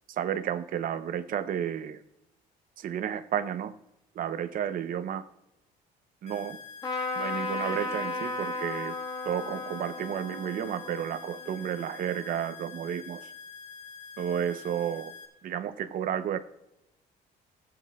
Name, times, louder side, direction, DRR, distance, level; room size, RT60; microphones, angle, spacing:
voice 1, 0.1-2.0 2.8-3.7 4.1-5.3 6.2-6.6 7.1-8.9 9.2-13.2 14.2-15.1 15.4-16.4, right 9 dB, 55° right, 11 dB, 0.8 m, -32 dB
sound 1, 6.3-15.3, left 6 dB, 40° left, 1.3 m, -46 dB
Trumpet, 6.8-12.3, left 3 dB, 25° left, 1.5 m, -35 dB
19.0 x 7.9 x 2.4 m, 0.88 s
cardioid pair, 110°, 17 cm